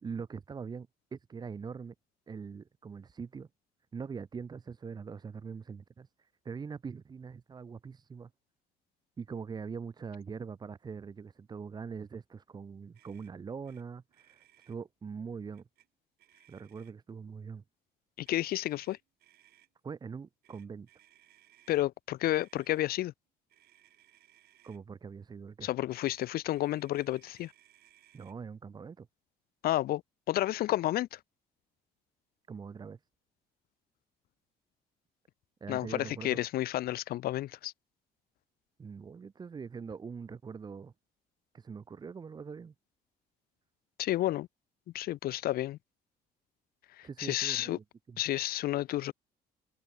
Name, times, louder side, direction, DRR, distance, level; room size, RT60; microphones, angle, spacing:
voice 1, 0.0-1.9 2.3-3.5 3.9-8.3 9.2-15.7 16.5-17.6 19.8-20.9 24.6-25.7 28.1-29.1 32.5-33.0 35.6-36.4 38.8-40.9 41.5-42.7 47.0-48.2, right 5 dB, 25° right, 0.6 m, -43 dB
Motor vehicle (road), 12.9-13.3 13.6-13.8 14.1-14.8 15.5-15.9 16.2-17.1 18.2-19.7 20.4-21.9 22.3-22.8 23.5-24.8 25.9-28.4, right 13 dB, 65° right, 2.5 m, -64 dB
voice 2, 18.2-19.0 21.7-23.1 25.6-27.5 29.6-30.0 30.3-31.2 35.7-37.7 44.0-44.5 44.9-45.8 47.0-47.8 48.2-49.1, left 14 dB, 65° left, 0.6 m, -31 dB
cardioid pair, 110°, 17 cm